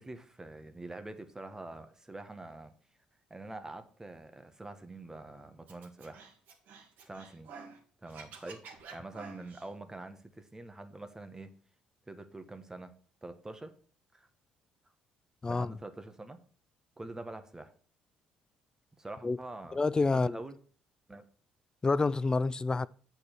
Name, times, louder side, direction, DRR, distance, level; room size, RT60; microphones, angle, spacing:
voice 1, 0.0-2.7 3.3-6.2 7.0-7.5 8.0-11.5 12.1-12.9 13.2-13.7 14.1-14.3 15.5-16.4 17.0-17.7 19.0-19.8 20.1-20.6 21.1-21.3, right 2 dB, 20° right, 1.4 m, -45 dB
Scratching (performance technique), 5.7-7.8 8.1-9.7, right 5 dB, 70° right, 2.0 m, -49 dB
voice 2, 19.7-20.4 21.8-22.9, left 3 dB, 25° left, 0.3 m, -28 dB
8.4 x 4.7 x 6.1 m
hypercardioid pair, 60°, 3 cm